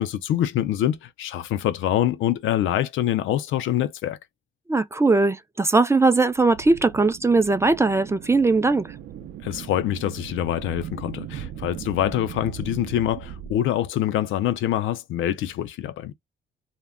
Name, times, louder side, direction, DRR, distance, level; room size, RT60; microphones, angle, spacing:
voice 1, 0.0-4.2 9.4-16.1, left 12 dB, 75° left, 0.4 m, -25 dB
voice 2, 4.7-8.9, right 3 dB, 15° right, 0.3 m, -20 dB
sound 1, 6.3-13.5, right 10 dB, 70° right, 0.5 m, -38 dB
2.1 x 2.1 x 3.5 m
cardioid pair, 90°, 20 cm